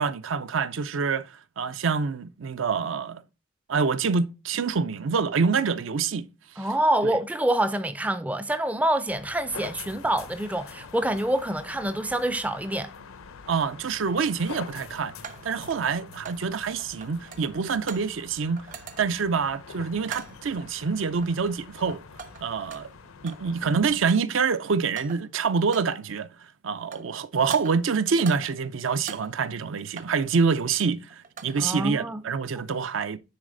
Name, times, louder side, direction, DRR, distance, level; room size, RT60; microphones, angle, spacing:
voice 1, 0.0-3.2 3.7-6.3 6.6-6.7 7.0-7.1 13.5-15.1 15.4-22.0 22.4-22.9 23.2-26.3 26.6-33.2, right 5 dB, 70° right, 0.5 m, -26 dB
voice 2, 6.6-12.9 31.6-32.2, right 1 dB, 5° right, 0.4 m, -26 dB
sound 1, 9.1-24.0, left 5 dB, 85° left, 0.7 m, -45 dB
sound 2, 13.0-13.1 15.2-16.5 16.8-18.2 18.6-19.3 20.1-20.5 21.2-21.6 21.9-23.5 23.8-24.4 24.8-25.4 25.7-26.1 26.7-27.2 27.5-28.6 28.9-30.2 31.1-31.7, right 6 dB, 40° right, 0.8 m, -44 dB
9.6 x 4.1 x 3.8 m
head